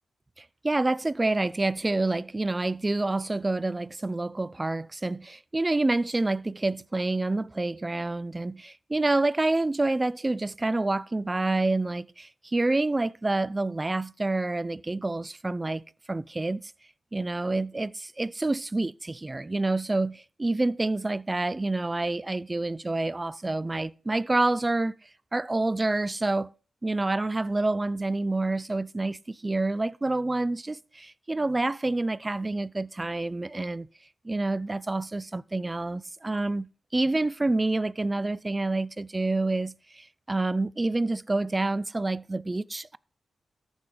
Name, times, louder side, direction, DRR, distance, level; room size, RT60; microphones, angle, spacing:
voice 1, 0.4-16.7 17.1-25.0 25.3-26.5 26.8-33.9 34.2-43.0, right 2 dB, 20° right, 0.5 m, -28 dB
13.5 x 8.0 x 5.0 m
cardioid pair, 80°, 0 cm